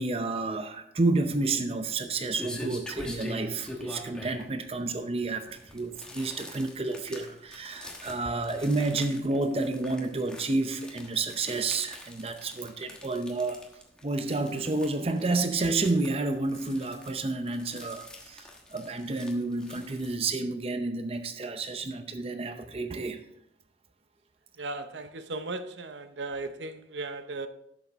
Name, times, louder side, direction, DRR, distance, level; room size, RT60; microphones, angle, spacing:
voice 1, 0.0-13.6 14.0-23.2, right 3 dB, 35° right, 0.6 m, -30 dB
sound 1, 1.6-20.1, left 1 dB, 5° left, 1.2 m, -45 dB
voice 2, 24.6-27.5, right 3 dB, 85° right, 0.7 m, -36 dB
11.5 x 7.1 x 3.6 m
head